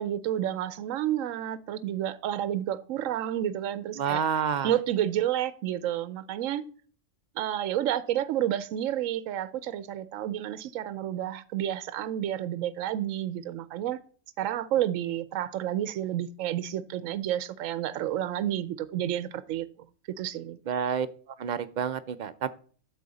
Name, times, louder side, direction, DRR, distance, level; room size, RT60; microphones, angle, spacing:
voice 1, 0.0-4.2 4.6-6.6 7.4-14.0 14.4-19.7 20.2-20.6, right 11 dB, 85° right, 1.0 m, -30 dB
voice 2, 4.0-4.7 20.7-21.1 21.4-22.5, right 7 dB, 55° right, 0.5 m, -29 dB
8.5 x 6.8 x 4.0 m
omnidirectional pair, 1.3 m